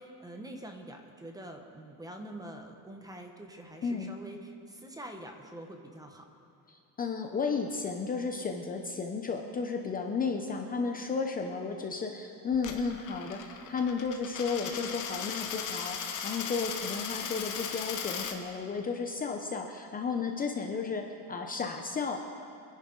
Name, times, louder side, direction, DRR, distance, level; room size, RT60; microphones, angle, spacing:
voice 1, 0.0-6.3, right 1 dB, 10° right, 4 dB, 0.9 m, -45 dB
voice 2, 6.7-22.2, left 5 dB, 25° left, 3 dB, 0.7 m, -33 dB
Coin (dropping), 12.5-18.4, left 7 dB, 50° left, 1.3 m, -37 dB
25.5 x 10.5 x 3.9 m, 2.6 s
cardioid pair, 165°, 38 cm